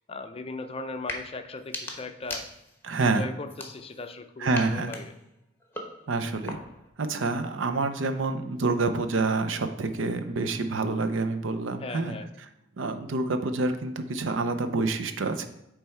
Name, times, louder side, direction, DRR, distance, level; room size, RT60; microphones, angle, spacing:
voice 1, 0.1-2.5 3.0-5.1 11.8-12.3, left 3 dB, 30° left, 8 dB, 0.5 m, -38 dB
sound 1, 0.9-1.2 1.6-2.9 3.5-4.1 4.5-6.9, left 2 dB, 10° left, 1.0 m, -40 dB
voice 2, 2.8-3.2 4.4-4.9 6.1-6.6 7.0-12.2 12.8-15.5, right 3 dB, 75° right, 8 dB, 0.6 m, -27 dB
8.8 x 3.4 x 4.4 m, 0.85 s
head